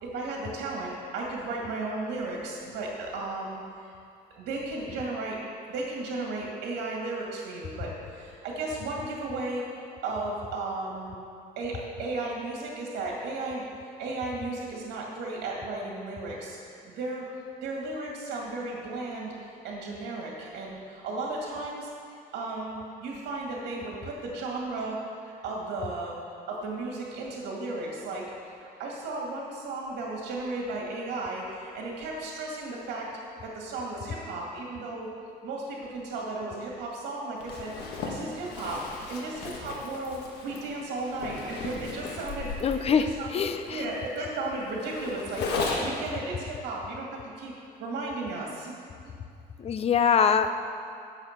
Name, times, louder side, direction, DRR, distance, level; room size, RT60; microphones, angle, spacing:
voice 1, 0.0-3.9 4.4-5.4 5.7-9.6 10.0-11.2 11.6-13.6 14.0-17.3 17.6-21.9 22.3-25.0 25.4-26.2 26.5-28.3 28.6-33.1 33.4-35.1 35.4-43.4 43.7-45.4 45.8-47.5 47.8-48.7, right 2 dB, 75° right, -2 dB, 2.1 m, -35 dB
Zipper (clothing), 37.4-46.1, left 3 dB, 80° left, 1.6 m, -36 dB
voice 2, 42.6-43.8 49.6-50.5, left 7 dB, 35° left, 9 dB, 0.6 m, -24 dB
9.0 x 7.4 x 5.9 m, 2.4 s
cardioid pair, 110°, 17 cm